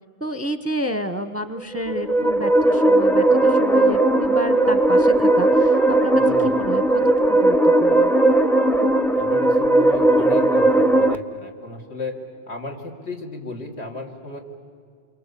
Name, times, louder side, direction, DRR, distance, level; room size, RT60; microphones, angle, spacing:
voice 1, 0.2-8.1, equal, 15° right, 11 dB, 0.8 m, -30 dB
sound 1, 1.7-11.1, right 2 dB, ahead, 0.4 m, -17 dB
voice 2, 6.3-6.6 9.1-12.2 12.5-14.4, left 2 dB, 65° left, 1 dB, 3.0 m, -34 dB
28.5 x 23.5 x 8.3 m, 2.2 s
omnidirectional pair, 1.2 m